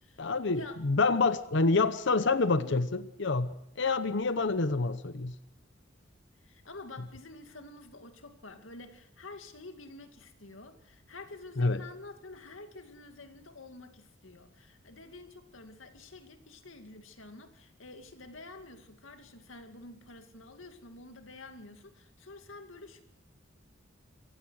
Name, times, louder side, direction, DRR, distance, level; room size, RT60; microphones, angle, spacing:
voice 1, 0.2-5.3 11.6-11.8, left 3 dB, 65° left, 0.9 m, -27 dB
voice 2, 2.5-2.9 6.4-23.0, left 2 dB, 90° left, 2.3 m, -49 dB
26.5 x 16.0 x 6.4 m
head